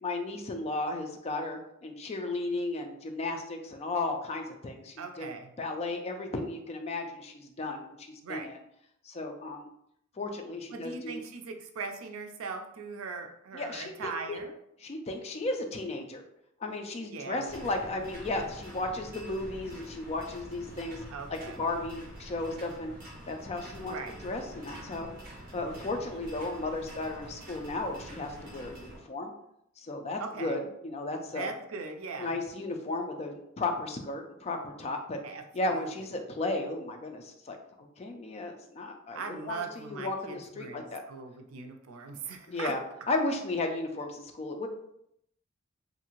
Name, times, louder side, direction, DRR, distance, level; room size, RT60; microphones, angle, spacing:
voice 1, 0.0-5.3 5.6-8.6 9.0-9.7 10.2-11.2 13.5-14.4 14.8-16.2 16.6-21.0 21.3-22.9 23.3-24.0 24.2-25.1 25.5-29.3 29.8-31.5 32.2-35.2 35.5-37.6 38.0-41.0 42.5-42.8 43.1-44.7, left 2 dB, 30° left, 4 dB, 0.4 m, -34 dB
voice 2, 5.0-5.5 8.2-8.5 10.7-14.6 17.1-17.4 17.7-17.8 21.1-21.6 23.8-24.1 30.2-30.6 31.3-32.3 35.2-35.4 35.7-35.9 39.1-42.7, right 4 dB, 80° right, 4 dB, 0.4 m, -40 dB
sound 1, 17.4-29.0, equal, 40° right, 1.1 m, -46 dB
2.7 x 2.5 x 2.9 m, 0.75 s
head